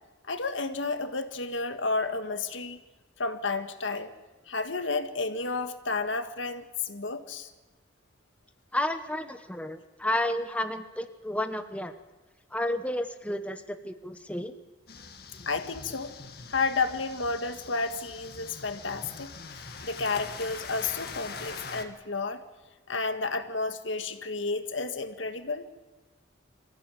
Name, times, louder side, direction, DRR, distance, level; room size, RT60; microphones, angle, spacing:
voice 1, 0.3-2.8 3.2-4.1 4.5-7.5 15.5-16.1 16.5-19.3 19.8-22.4 22.9-25.7, left 3 dB, 85° left, 8 dB, 1.8 m, -31 dB
voice 2, 8.7-11.9 12.5-14.5, left 1 dB, 5° left, 8 dB, 1.0 m, -31 dB
sound 1, 14.9-21.8, left 4 dB, 55° left, 2.2 m, -43 dB
25.0 x 15.5 x 9.2 m, 1.2 s
head